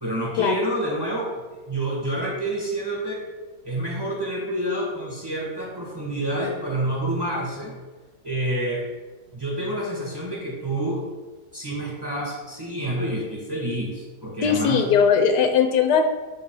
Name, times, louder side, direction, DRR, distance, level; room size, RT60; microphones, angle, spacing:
voice 1, 0.0-3.2 3.6-7.7 8.2-8.9 9.3-11.0 11.5-14.8, right 1 dB, 15° right, -4 dB, 1.4 m, -28 dB
voice 2, 14.4-16.0, left 7 dB, 80° left, 5 dB, 1.3 m, -19 dB
6.2 x 3.7 x 4.7 m, 1.2 s
omnidirectional pair, 1.8 m